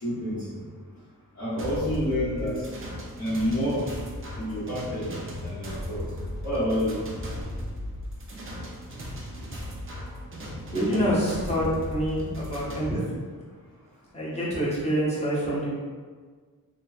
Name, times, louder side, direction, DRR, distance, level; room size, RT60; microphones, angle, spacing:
voice 1, 0.0-0.5 1.4-2.6 3.2-3.8 4.4-6.0 6.4-7.0, equal, 50° left, -13 dB, 1.0 m, -28 dB
sound 1, 1.6-12.9, equal, 35° right, 0.4 m, -36 dB
voice 2, 10.7-13.0 14.1-15.7, equal, 20° left, -8 dB, 0.8 m, -26 dB
3.0 x 2.1 x 2.4 m, 1.5 s
wide cardioid pair, 135°, 36 cm